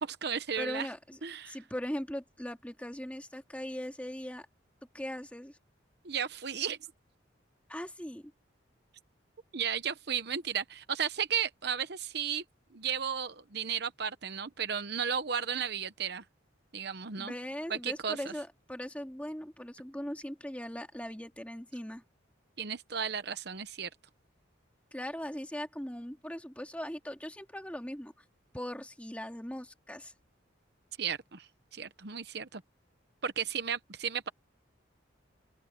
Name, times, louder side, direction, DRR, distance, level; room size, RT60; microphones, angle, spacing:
voice 1, 0.0-0.9 1.2-1.6 6.0-6.8 9.5-12.4 12.7-16.2 16.7-17.3 17.7-18.2 22.6-23.9 31.0-32.6 33.2-34.3, right 7 dB, 55° right, 0.9 m, -34 dB
voice 2, 0.6-1.2 1.5-4.5 4.9-5.6 7.7-8.3 17.2-22.0 24.9-28.1 28.5-30.1, equal, 5° left, 2.1 m, -39 dB
open air
head